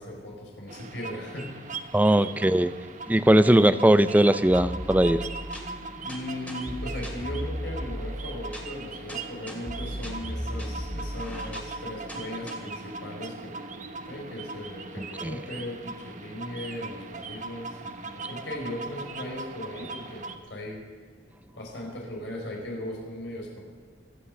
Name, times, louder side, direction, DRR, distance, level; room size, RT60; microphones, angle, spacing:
voice 1, 0.0-1.5 6.0-20.8 21.5-23.6, left 1 dB, 80° left, -1 dB, 4.8 m, -38 dB
sound 1, 0.7-20.4, right 3 dB, 45° right, 1.1 m, -40 dB
voice 2, 1.9-2.7 3.1-5.2 15.0-15.3, right 1 dB, 10° right, 12 dB, 0.5 m, -20 dB
sound 2, 4.5-12.5, equal, 10° left, 2.5 m, -36 dB
24.0 x 8.7 x 6.5 m, 1.5 s
head